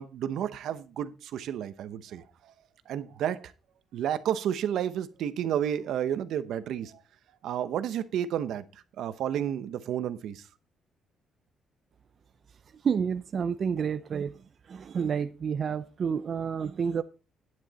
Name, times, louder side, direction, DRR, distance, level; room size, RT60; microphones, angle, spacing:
voice 1, 0.0-2.5 2.9-3.5 3.9-7.0 7.4-10.5, right 10 dB, 75° right, 0.8 m, -31 dB
voice 2, 12.8-14.4 14.7-17.0, right 7 dB, 50° right, 0.5 m, -29 dB
9.6 x 9.1 x 4.0 m
cardioid pair, 90°, 0 cm